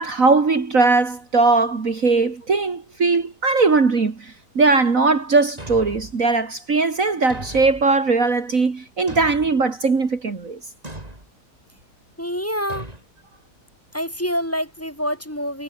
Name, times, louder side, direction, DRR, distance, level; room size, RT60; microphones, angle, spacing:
voice 1, 0.0-10.6, right 3 dB, 50° right, 2.6 m, -19 dB
Thump thud, 5.6-6.2 7.3-7.9 9.1-9.6 10.8-11.3 12.7-13.0, right 1 dB, 20° right, 4.7 m, -36 dB
voice 2, 12.2-12.9 13.9-15.6, equal, 10° left, 5.1 m, -26 dB
omnidirectional pair, 1.8 m